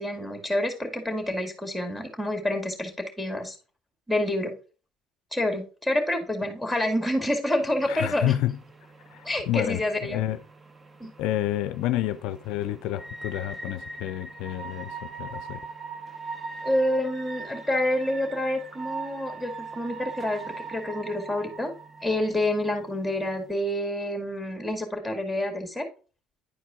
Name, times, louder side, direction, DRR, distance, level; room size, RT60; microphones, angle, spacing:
voice 1, 0.0-3.6 4.1-4.5 5.3-8.3 9.2-10.2 11.0-11.1 16.6-21.7 22.0-25.9, left 1 dB, ahead, 2.3 m, -28 dB
sound 1, 7.6-23.5, right 4 dB, 25° right, 0.8 m, -41 dB
voice 2, 7.9-8.6 9.1-10.4 11.0-15.6, left 13 dB, 75° left, 0.4 m, -29 dB
10.0 x 4.6 x 3.7 m
supercardioid pair, 90°, 0 cm